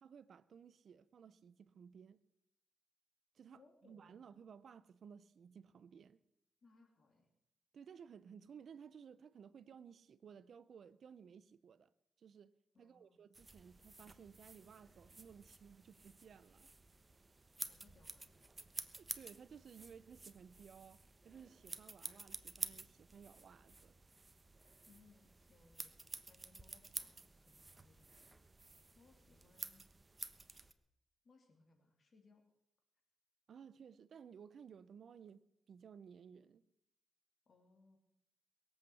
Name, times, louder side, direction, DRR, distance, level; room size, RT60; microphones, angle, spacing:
voice 1, 0.0-2.2 3.3-6.2 7.7-11.9 12.2-12.5 12.8-16.7 18.9-24.0 33.5-36.6, right 7 dB, 70° right, 0.6 m, -57 dB
voice 2, 3.5-4.2 6.6-7.3 12.7-13.2 17.6-18.4 24.9-28.3 28.9-29.8 30.3-30.7 31.2-32.4 37.5-38.0, left 3 dB, 55° left, 2.9 m, -69 dB
sound 1, 13.3-30.7, right 3 dB, 30° right, 1.2 m, -51 dB
21.5 x 8.1 x 7.0 m
cardioid pair, 70°, 0 cm